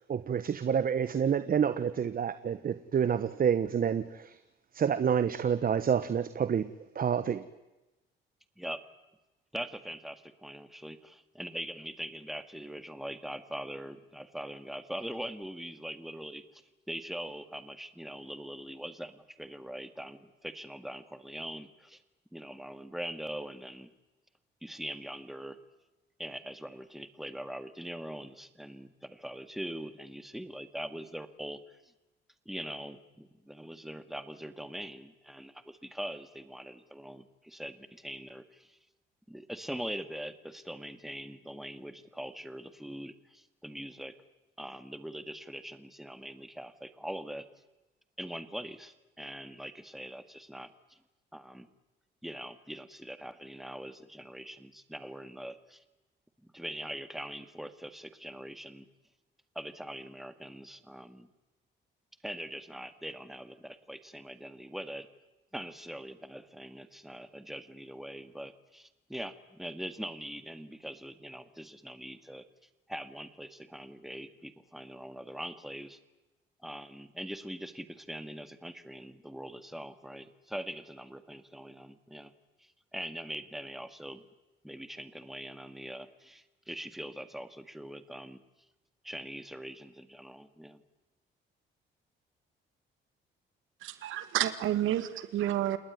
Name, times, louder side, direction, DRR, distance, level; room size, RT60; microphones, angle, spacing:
voice 1, 0.1-4.4 4.7-6.7 6.9-7.5, right 7 dB, 45° right, 13 dB, 1.2 m, -28 dB
voice 2, 9.5-16.6 16.9-22.0 22.3-23.9 24.6-25.6 26.2-31.6 32.5-38.8 39.3-44.1 44.6-47.5 48.2-51.0 51.3-51.7 52.2-55.8 56.4-58.9 59.6-61.3 62.2-65.1 65.5-72.4 72.9-76.0 76.6-82.3 82.9-84.3 84.6-88.4 89.0-90.8, equal, ahead, 10 dB, 2.0 m, -42 dB
voice 3, 93.8-95.8, right 12 dB, 85° right, 11 dB, 2.0 m, -30 dB
29.0 x 19.5 x 9.6 m, 1.0 s
cardioid pair, 90°, 20 cm